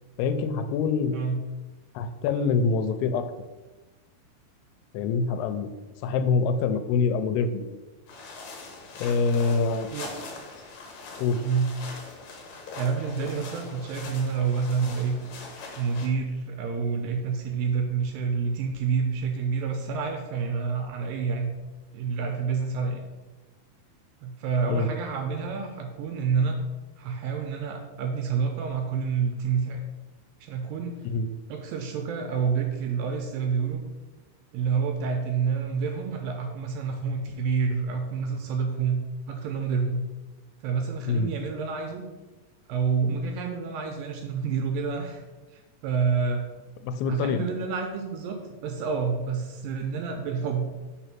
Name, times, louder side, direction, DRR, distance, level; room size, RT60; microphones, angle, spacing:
voice 1, 0.2-1.2 2.0-3.2 4.9-5.7 6.0-7.7 9.0-9.9 11.2-11.4 24.7-24.9 31.0-31.3 41.1-41.3 46.8-47.5, left 4 dB, 85° left, 9 dB, 2.6 m, -25 dB
sound 1, 8.1-16.1, left 3 dB, 65° left, 2.0 m, -42 dB
voice 2, 11.4-11.7 12.8-15.2 15.8-21.5 21.9-23.1 24.2-26.6 27.0-29.8 30.4-30.9 31.5-33.8 34.5-39.0 39.3-40.0 40.6-42.0 42.7-45.2 45.5-46.5 47.1-50.7, right 5 dB, 80° right, 3 dB, 2.1 m, -28 dB
5.1 x 4.0 x 5.8 m, 1.2 s
omnidirectional pair, 4.5 m